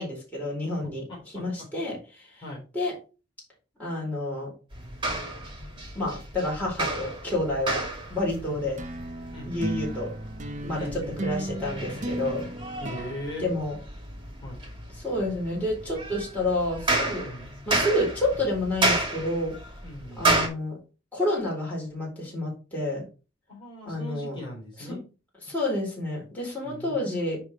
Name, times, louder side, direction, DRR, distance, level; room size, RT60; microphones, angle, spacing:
voice 1, 0.0-1.0 1.3-2.4 2.7-2.9 3.8-4.5 5.9-8.8 9.4-10.1 10.6-12.5 13.4-13.7 15.0-17.3 17.7-19.5 20.2-20.8 21.1-23.0 23.9-24.4 24.8-25.0 25.4-27.4, left 1 dB, 10° left, -4 dB, 4.1 m, -29 dB
voice 2, 0.8-1.7 2.4-2.6 8.5-8.6 9.3-9.8 10.8-11.2 12.8-13.4 14.4-14.6 17.2-17.5 19.8-20.3 23.5-25.0 26.6-27.2, left 1 dB, 25° left, -3 dB, 3.6 m, -40 dB
sound 1, 4.7-20.5, right 2 dB, 25° right, 2.3 m, -32 dB
sound 2, 8.8-14.4, right 1 dB, 40° right, 0.8 m, -35 dB
9.9 x 3.5 x 4.3 m, 0.33 s
head